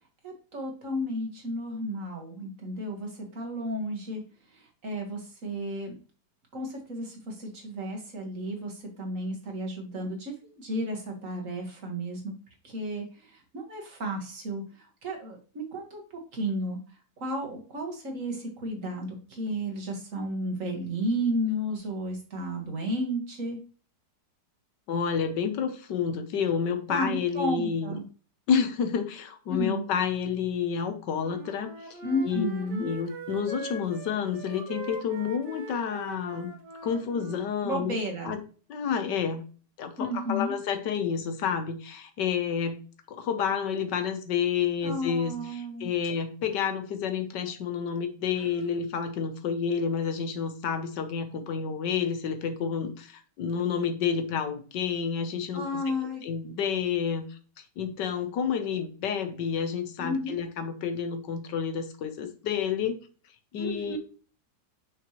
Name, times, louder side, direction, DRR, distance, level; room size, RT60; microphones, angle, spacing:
voice 1, 0.2-4.2 4.5-5.9 6.5-12.3 12.6-16.0 16.3-16.8 17.2-23.6 26.9-28.0 29.5-29.9 32.0-32.9 37.6-38.4 40.0-40.5 44.8-45.9 48.4-48.6 55.5-56.2 60.0-60.4 63.6-64.0, equal, 50° right, 1 dB, 1.9 m, -33 dB
voice 2, 24.9-27.9 28.5-32.0 32.2-32.4 32.8-36.5 36.8-38.0 38.2-38.4 38.7-39.4 39.8-42.8 43.1-55.8 56.2-57.4 57.8-63.0 63.5-64.0, left 7 dB, 85° left, 7 dB, 1.6 m, -29 dB
Wind instrument woodwind instrument, 31.1-37.5, right 2 dB, 75° right, 1.9 m, -42 dB
6.0 x 5.7 x 3.0 m, 0.37 s
omnidirectional pair, 1.8 m